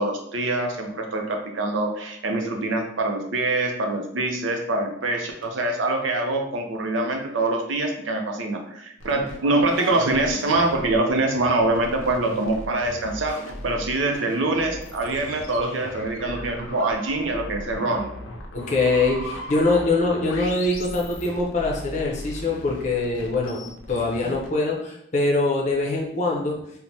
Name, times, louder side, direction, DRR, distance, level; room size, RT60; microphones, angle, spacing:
voice 1, 0.0-13.4 13.6-18.1, right 2 dB, 75° right, 3 dB, 0.5 m, -24 dB
sound 1, 9.0-24.5, left 1 dB, 85° left, 0.5 m, -38 dB
voice 2, 18.5-26.6, left 2 dB, 35° left, -2 dB, 0.6 m, -23 dB
3.2 x 2.1 x 2.7 m, 0.72 s
head